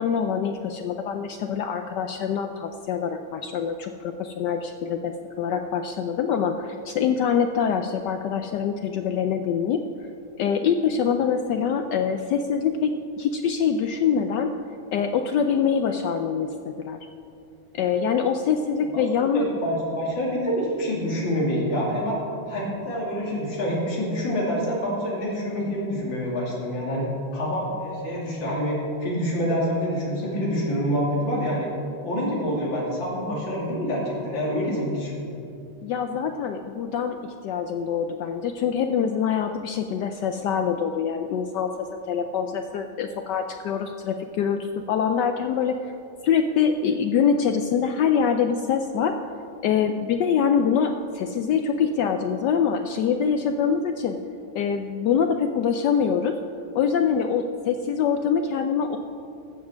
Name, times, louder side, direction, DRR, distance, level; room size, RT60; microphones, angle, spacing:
voice 1, 0.0-9.8 10.4-14.5 14.9-17.0 17.7-19.5 34.7-34.8 35.8-44.6 44.9-45.9 46.2-49.2 49.6-54.2 54.5-56.4 56.7-59.0, left 7 dB, 80° left, 6 dB, 0.9 m, -24 dB
voice 2, 19.3-22.2 22.5-27.1 27.3-31.7 32.0-35.4, equal, 60° left, -4 dB, 3.4 m, -26 dB
14.5 x 7.4 x 6.2 m, 2.6 s
omnidirectional pair, 2.4 m